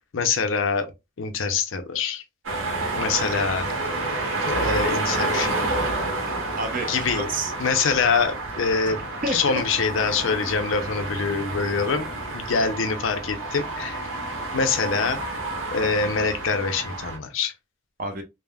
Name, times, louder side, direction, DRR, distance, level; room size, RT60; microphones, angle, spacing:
voice 1, 0.1-0.9 1.2-2.2 2.9-3.7 4.5-5.6 6.9-7.3 7.6-9.0 9.3-14.1 14.5-15.4 15.7-17.5, left 5 dB, 70° left, 0.5 m, -25 dB
sound 1, 2.4-17.2, right 2 dB, 80° right, 1.0 m, -29 dB
voice 2, 6.3-7.5 8.9-9.4 18.0-18.2, right 2 dB, 40° right, 0.6 m, -30 dB
3.3 x 2.0 x 2.2 m
head